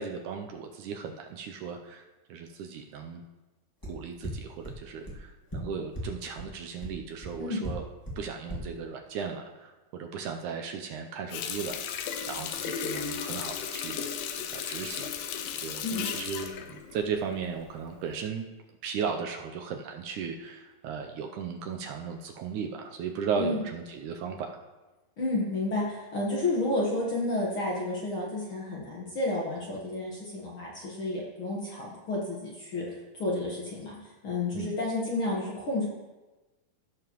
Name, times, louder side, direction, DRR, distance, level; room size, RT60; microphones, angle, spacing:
voice 1, 0.0-3.2 3.9-7.8 8.2-14.1 14.5-15.1 15.6-18.5 18.8-24.6 34.5-34.7, right 6 dB, 75° right, 4 dB, 1.9 m, -36 dB
sound 1, 3.8-3.9 4.2-4.3 4.6-4.7 5.0-5.1 5.5-5.6 5.9-6.0 6.4-6.5 6.8-6.9 7.2-7.3 7.6-7.7 8.0-8.1 8.5-8.6, right 1 dB, 20° left, 0.5 m, -36 dB
Water tap faucet, 11.3-17.7 18.1-18.3, left 8 dB, 85° left, 2.5 m, -35 dB
voice 2, 25.2-35.9, left 2 dB, 50° left, -4 dB, 1.6 m, -31 dB
16.5 x 6.8 x 3.0 m, 1.1 s
omnidirectional pair, 4.0 m